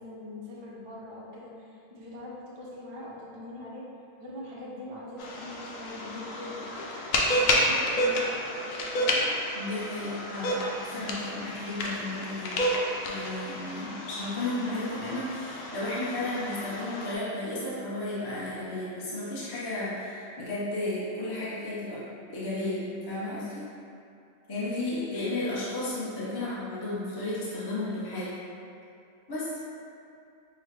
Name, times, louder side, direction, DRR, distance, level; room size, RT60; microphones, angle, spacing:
voice 1, 0.0-3.9 4.2-7.0 7.4-9.3 26.4-26.6, left 1 dB, 50° right, -5 dB, 0.3 m, -42 dB
sound 1, 5.2-17.1, left 1 dB, 85° left, 1.0 m, -30 dB
voice 2, 9.5-12.5 13.1-22.0 22.3-23.6 24.5-28.3 29.3-29.5, left 2 dB, 25° left, -9 dB, 0.5 m, -33 dB
5.7 x 2.1 x 3.2 m, 2.5 s
omnidirectional pair, 1.3 m